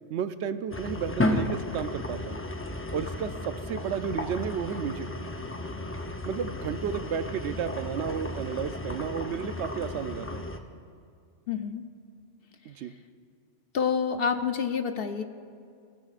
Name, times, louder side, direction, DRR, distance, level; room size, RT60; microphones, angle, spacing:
voice 1, 0.1-2.4 2.9-5.1 6.2-10.5 12.7-12.9, right 7 dB, 70° right, 11 dB, 0.9 m, -32 dB
sound 1, 0.7-10.6, left 1 dB, 15° left, 0.4 m, -33 dB
voice 2, 11.5-11.8 13.7-15.2, left 6 dB, 60° left, 8 dB, 0.7 m, -28 dB
22.0 x 15.5 x 2.5 m, 2.3 s
omnidirectional pair, 1.2 m